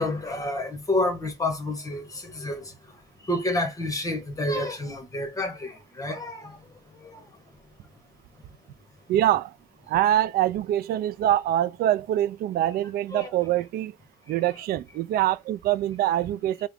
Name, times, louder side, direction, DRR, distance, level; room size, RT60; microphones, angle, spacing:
voice 1, 0.0-2.7 3.2-7.3 13.1-13.3, left 1 dB, 20° left, 1.3 m, -29 dB
voice 2, 9.1-9.5 9.9-14.0 14.3-16.7, right 12 dB, 65° right, 0.4 m, -24 dB
3.5 x 2.2 x 3.6 m
cardioid pair, 110°, 17 cm